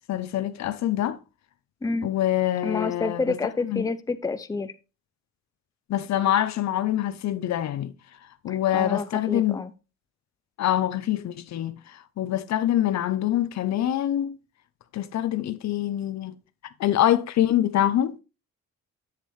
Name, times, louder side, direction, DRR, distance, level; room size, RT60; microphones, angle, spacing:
voice 1, 0.1-1.2 2.0-3.4 3.6-3.8 5.9-7.9 8.4-9.6 10.6-14.4 14.9-16.4 16.8-18.2, left 12 dB, 65° left, 0.7 m, -25 dB
voice 2, 2.6-4.7 8.5-9.7, left 4 dB, 10° left, 0.5 m, -29 dB
7.5 x 7.3 x 3.3 m
cardioid pair, 90°, 30 cm